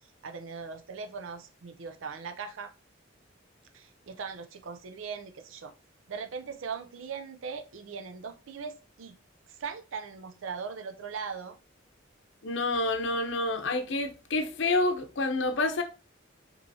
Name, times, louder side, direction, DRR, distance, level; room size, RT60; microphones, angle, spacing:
voice 1, 0.2-2.7 3.7-5.7 6.1-9.2 9.6-11.6, right 5 dB, 85° right, 0.5 m, -39 dB
voice 2, 12.4-15.8, left 2 dB, 65° left, 0.7 m, -28 dB
5.3 x 3.1 x 2.7 m
head